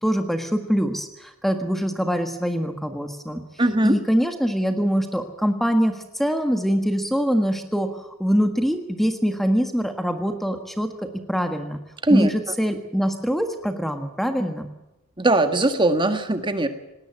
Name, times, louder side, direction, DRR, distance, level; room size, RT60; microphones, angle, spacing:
voice 1, 0.0-3.4 3.8-11.8 12.1-14.7, equal, ahead, 6 dB, 1.5 m, -24 dB
voice 2, 3.6-4.0 12.0-12.3 15.2-16.7, right 2 dB, 20° right, 7 dB, 1.7 m, -20 dB
19.5 x 18.5 x 8.2 m, 0.92 s
head